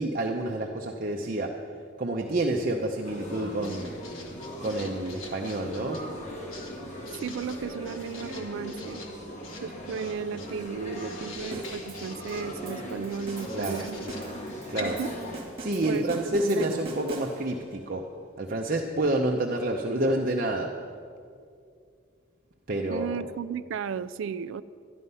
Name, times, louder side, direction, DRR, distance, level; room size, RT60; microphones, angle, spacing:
voice 1, 0.0-1.5 2.0-3.9 4.6-6.0 13.5-13.8 14.7-15.0 15.6-18.0 18.4-20.7 22.7-23.2, right 1 dB, 45° right, 1 dB, 0.7 m, -28 dB
Writing, 3.0-16.3, left 3 dB, 85° left, 1.7 m, -46 dB
sound 1, 3.0-15.4, equal, 35° left, 1.6 m, -39 dB
voice 2, 7.2-9.0 9.6-14.1 14.8-15.1 15.9-16.8 22.9-24.6, right 6 dB, 70° right, 12 dB, 0.3 m, -34 dB
sound 2, 11.5-17.7, right 2 dB, 30° right, 1.8 m, -43 dB
12.0 x 11.0 x 5.5 m, 2.3 s
head